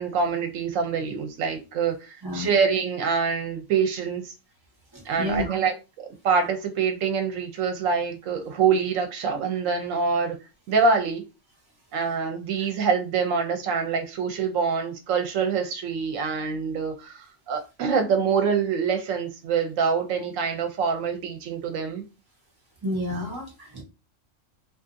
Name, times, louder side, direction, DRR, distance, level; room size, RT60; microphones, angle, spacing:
voice 1, 0.0-4.3 5.0-10.4 10.7-11.2 11.9-22.0, right 5 dB, 80° right, 1.0 m, -25 dB
voice 2, 4.9-5.5 22.8-23.8, left 1 dB, 20° right, 0.9 m, -30 dB
2.6 x 2.4 x 2.5 m
omnidirectional pair, 1.4 m